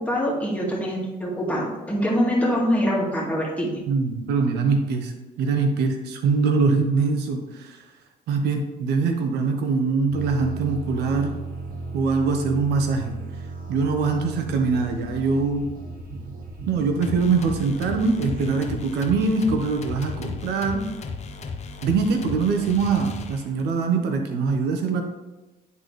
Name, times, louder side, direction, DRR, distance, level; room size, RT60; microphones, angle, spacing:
voice 1, 0.0-3.8, equal, 10° left, -4 dB, 2.0 m, -24 dB
voice 2, 3.9-5.1 5.4-7.8 8.3-11.4 11.9-13.2 13.7-15.7 16.7-20.9 21.8-25.0, right 4 dB, 75° right, 5 dB, 0.9 m, -23 dB
sound 1, 10.1-18.6, right 3 dB, 55° right, 1.1 m, -36 dB
sound 2, 17.0-23.7, left 4 dB, 40° left, 0.8 m, -35 dB
9.7 x 4.0 x 3.2 m, 1.1 s
cardioid pair, 110°, 17 cm